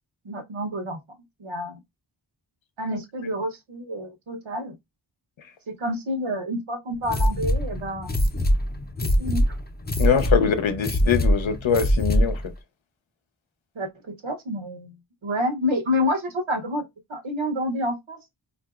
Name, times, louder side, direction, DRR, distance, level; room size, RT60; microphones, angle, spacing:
voice 1, 0.2-1.0 1.4-1.8 2.8-4.8 5.7-8.2 9.2-9.5 13.8-15.0 15.2-18.2, left 1 dB, 80° right, 0.9 m, -29 dB
sound 1, 7.0-12.5, equal, 20° left, 0.5 m, -23 dB
voice 2, 10.0-12.5, left 7 dB, 75° left, 0.7 m, -23 dB
3.7 x 2.5 x 2.3 m
wide cardioid pair, 65°, 47 cm